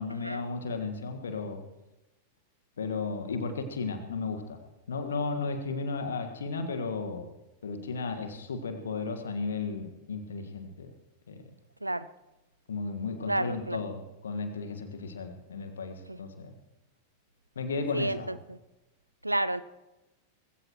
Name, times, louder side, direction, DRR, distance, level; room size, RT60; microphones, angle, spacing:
voice 1, 0.0-1.6 2.8-4.6 4.9-7.3 7.6-10.9 11.3-11.4 12.7-16.5 17.5-18.3, left 4 dB, 70° left, 7 dB, 1.6 m, -34 dB
voice 2, 13.3-13.8 16.1-16.2 17.9-18.6 19.2-19.6, right 1 dB, 85° right, 16 dB, 0.5 m, -31 dB
20.0 x 16.0 x 3.1 m, 1.0 s
figure-of-eight pair, 90°, 0 cm